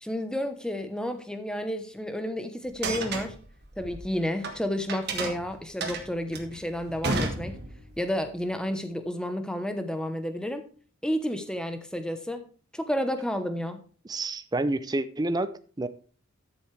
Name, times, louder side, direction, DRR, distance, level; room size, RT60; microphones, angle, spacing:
voice 1, 0.0-3.4 3.8-7.6 8.0-10.7 11.0-12.4 12.7-13.8, equal, 5° left, 8 dB, 0.9 m, -31 dB
sound 1, 2.7-4.5 4.9-8.0, right 3 dB, 50° right, 1.6 m, -32 dB
voice 2, 14.0-15.9, right 2 dB, 20° right, 12 dB, 0.4 m, -29 dB
13.0 x 7.1 x 3.3 m, 0.40 s
head